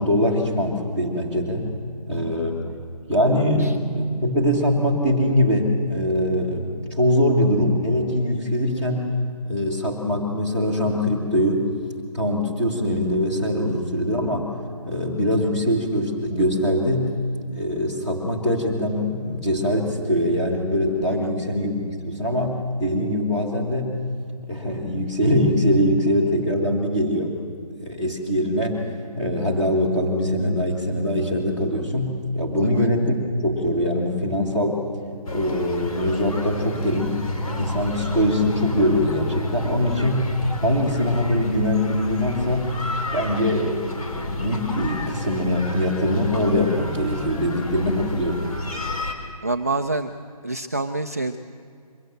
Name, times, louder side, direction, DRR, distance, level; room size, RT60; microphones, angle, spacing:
voice 1, 0.0-1.7 2.1-2.6 3.1-9.0 9.5-11.7 12.1-14.5 14.8-17.1 17.5-23.9 24.4-27.4 27.8-28.8 29.2-33.2 33.4-34.8 35.3-37.2 37.4-40.3 40.6-42.7 43.1-48.4, equal, 5° left, -3 dB, 1.6 m, -22 dB
sound 1, 35.3-49.1, left 1 dB, 65° left, 3.9 m, -30 dB
voice 2, 49.4-50.1 50.4-51.4, right 2 dB, 25° right, 5 dB, 0.5 m, -27 dB
23.0 x 16.0 x 7.7 m, 2.2 s
figure-of-eight pair, 175°, 20 cm